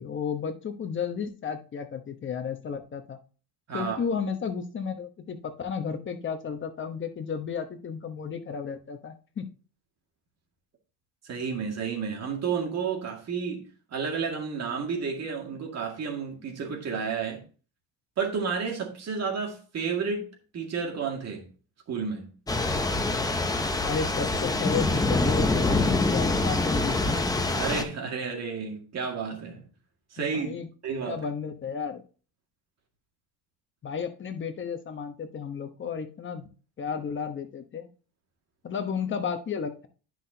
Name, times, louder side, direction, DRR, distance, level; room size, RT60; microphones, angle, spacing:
voice 1, 0.0-3.2 3.7-9.5 23.8-27.0 30.3-30.7 31.1-32.0 33.8-36.5 36.8-37.9 38.6-39.9, left 6 dB, 30° left, 1.0 m, -33 dB
voice 2, 11.2-17.4 18.2-21.5 21.9-22.2 27.6-29.6 30.1-30.5 30.8-31.2, right 5 dB, 40° right, 2.1 m, -31 dB
Thunder / Rain, 22.5-27.8, left 2 dB, 10° left, 0.7 m, -25 dB
9.9 x 6.0 x 2.8 m
cardioid pair, 145°, 41 cm